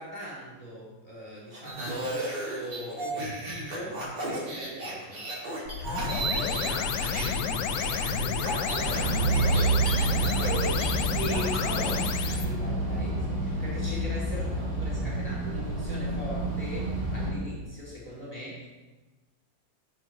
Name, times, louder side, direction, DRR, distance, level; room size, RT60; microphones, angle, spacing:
voice 1, 0.0-5.3 6.3-18.7, right 1 dB, 20° left, -6 dB, 2.5 m, -40 dB
sound 1, 1.5-7.4 7.6-12.3, right 2 dB, 70° right, 3.0 m, -35 dB
sound 2, 5.7-12.5, left 6 dB, 75° left, 1.3 m, -30 dB
sound 3, 8.7-17.3, right 2 dB, 40° right, 3.3 m, -29 dB
15.0 x 6.7 x 2.9 m, 1.2 s
omnidirectional pair, 1.9 m